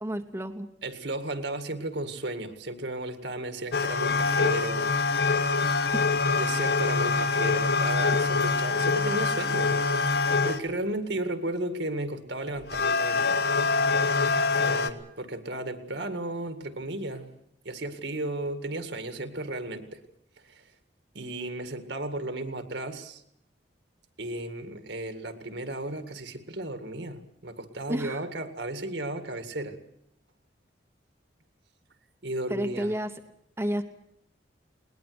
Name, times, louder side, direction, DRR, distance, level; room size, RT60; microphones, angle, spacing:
voice 1, 0.0-0.7 5.9-6.0 27.9-28.2 32.5-33.1 33.6-33.8, equal, 15° right, 6 dB, 0.9 m, -30 dB
voice 2, 0.8-4.9 6.4-9.8 10.2-13.4 14.2-17.3 17.6-20.0 20.4-20.7 21.1-23.2 24.2-29.8 32.2-32.9, right 1 dB, 70° right, 8 dB, 2.0 m, -34 dB
sound 1, 3.7-10.6 12.5-14.9, left 4 dB, 55° left, 1.1 m, -25 dB
21.0 x 19.5 x 8.0 m, 0.73 s
head